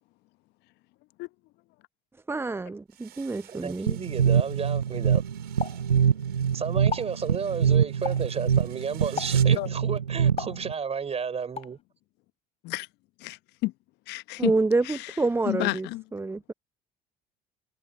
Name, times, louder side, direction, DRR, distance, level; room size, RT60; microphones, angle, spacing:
voice 1, 2.3-4.0 14.4-16.5, right 3 dB, 10° right, 0.7 m, -27 dB
sound 1, 2.9-9.7, right 15 dB, 55° right, 6.8 m, -50 dB
voice 2, 3.5-5.2 6.5-11.8, right 6 dB, 30° right, 4.2 m, -32 dB
sound 2, 3.9-10.7, right 8 dB, 85° right, 0.8 m, -24 dB
Explosion, 5.6-6.5 6.8-7.2 8.1-8.4 9.2-9.5 10.4-11.1 11.6-11.8, left 6 dB, 30° left, 4.1 m, -36 dB
voice 3, 13.2-13.7 14.1-14.5 14.9-15.0 15.5-16.0, left 21 dB, 55° left, 1.2 m, -30 dB
figure-of-eight pair, 60°, 20 cm